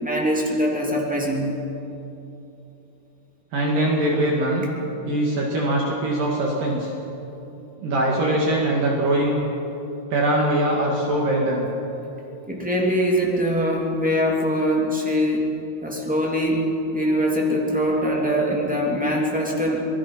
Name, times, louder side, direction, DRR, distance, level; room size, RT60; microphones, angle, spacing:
voice 1, 0.0-1.6 12.5-15.5 15.8-16.7 16.9-19.8, equal, 5° right, -2 dB, 1.5 m, -22 dB
voice 2, 3.5-4.7 5.1-6.9 7.8-9.4 10.1-11.7, right 1 dB, 55° right, -2 dB, 3.5 m, -22 dB
27.0 x 20.0 x 5.8 m, 2.9 s
omnidirectional pair, 5.2 m